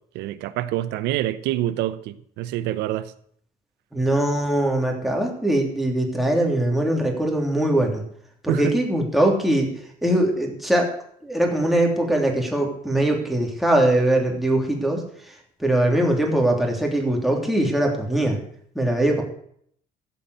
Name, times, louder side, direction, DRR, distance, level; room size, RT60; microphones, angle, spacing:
voice 1, 0.1-3.1 8.5-8.7, right 13 dB, 90° right, 0.8 m, -26 dB
voice 2, 3.9-8.0 8.4-9.7 10.0-10.9 11.2-15.3 15.6-18.4 18.7-19.2, right 1 dB, ahead, 3.0 m, -21 dB
14.5 x 5.7 x 8.2 m
cardioid pair, 110°, 17 cm